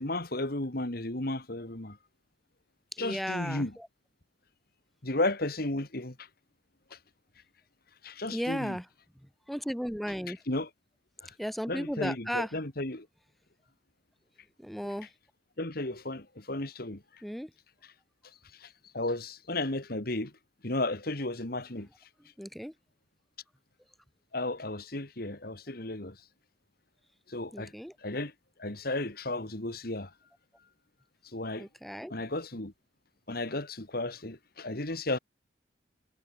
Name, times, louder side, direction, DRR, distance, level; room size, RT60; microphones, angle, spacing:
voice 1, 0.0-2.0 3.0-3.7 5.0-6.3 6.9-7.0 8.0-8.8 10.3-10.7 11.2-11.3 11.7-13.1 15.6-17.2 18.5-20.3 20.6-21.9 24.3-26.2 27.3-27.7 28.0-28.3 28.6-30.1 31.2-31.7 32.1-32.7 33.3-35.2, left 2 dB, 55° left, 2.4 m, -34 dB
voice 2, 2.9-3.9 8.3-8.8 9.5-10.4 11.4-12.5 14.6-15.1 17.2-17.5 22.4-22.7 27.5-27.9 31.6-32.1, equal, ahead, 1.5 m, -35 dB
head